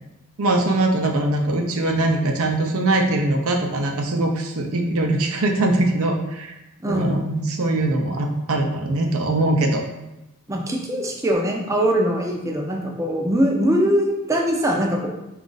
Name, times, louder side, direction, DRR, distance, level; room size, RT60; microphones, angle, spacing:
voice 1, 0.4-6.5 6.9-9.8, right 2 dB, 75° right, 3 dB, 0.6 m, -22 dB
voice 2, 6.8-7.3 10.5-15.1, equal, 15° right, 0 dB, 0.5 m, -22 dB
5.0 x 2.4 x 3.9 m, 0.94 s
head